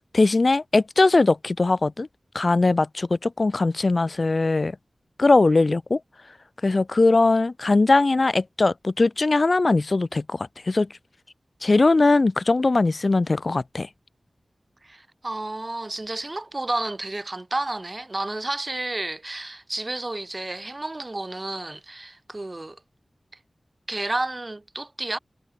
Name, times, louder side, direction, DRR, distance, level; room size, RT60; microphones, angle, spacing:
voice 1, 0.1-2.1 2.3-4.7 5.2-6.0 6.6-10.9 11.6-13.9, left 3 dB, 50° left, 0.8 m, -20 dB
voice 2, 14.8-22.8 23.9-25.2, right 2 dB, 35° right, 2.9 m, -31 dB
wide cardioid pair, 75°, 0 cm